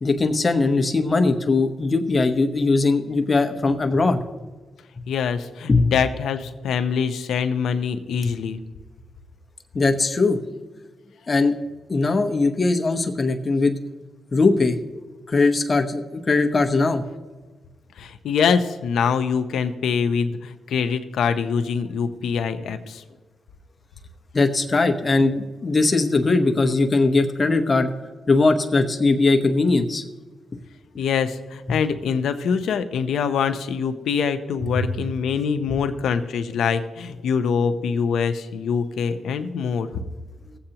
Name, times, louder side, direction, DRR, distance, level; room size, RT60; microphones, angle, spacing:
voice 1, 0.0-4.2 5.7-5.9 9.7-10.4 11.3-11.5 11.9-13.8 14.3-14.8 15.3-17.0 24.3-27.9 28.3-30.0 34.8-34.9, left 3 dB, 30° left, 6 dB, 1.0 m, -20 dB
voice 2, 5.1-8.6 18.0-23.0 31.0-39.9, left 6 dB, 80° left, 9 dB, 0.7 m, -24 dB
18.5 x 7.8 x 2.9 m, 1.3 s
cardioid pair, 80°, 0 cm